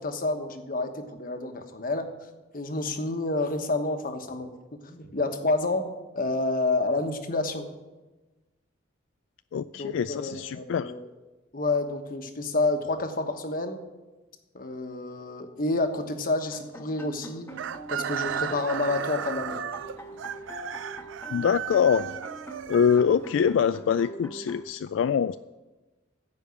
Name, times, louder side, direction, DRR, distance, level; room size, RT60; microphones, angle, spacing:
voice 1, 0.0-2.1 2.5-5.9 6.1-7.7 9.7-11.0 11.5-13.8 14.5-17.5 17.9-19.6, left 2 dB, 50° left, 6 dB, 1.2 m, -29 dB
voice 2, 9.5-10.9 21.3-22.1 22.7-25.4, left 7 dB, 80° left, 12 dB, 0.3 m, -24 dB
sound 1, 16.5-24.6, equal, 15° left, 1.2 m, -43 dB
Chicken rooster, 17.5-23.5, right 9 dB, 75° right, 0.4 m, -35 dB
15.0 x 5.2 x 8.4 m, 1.2 s
head